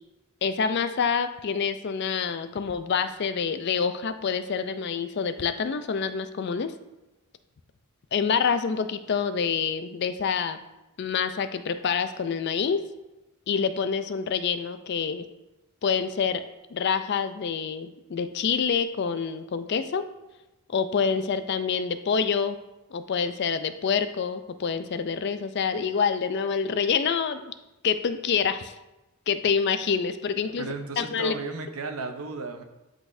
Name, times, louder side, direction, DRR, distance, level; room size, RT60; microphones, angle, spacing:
voice 1, 0.4-6.7 8.1-10.6 11.0-12.8 13.5-15.3 15.8-16.4 16.7-20.1 20.7-22.6 22.9-27.5 27.8-28.7 29.3-30.7 31.0-31.3, left 6 dB, 50° left, 10 dB, 0.4 m, -27 dB
voice 2, 30.6-32.6, right 3 dB, 75° right, 6 dB, 0.7 m, -34 dB
10.5 x 3.9 x 2.6 m, 1.0 s
head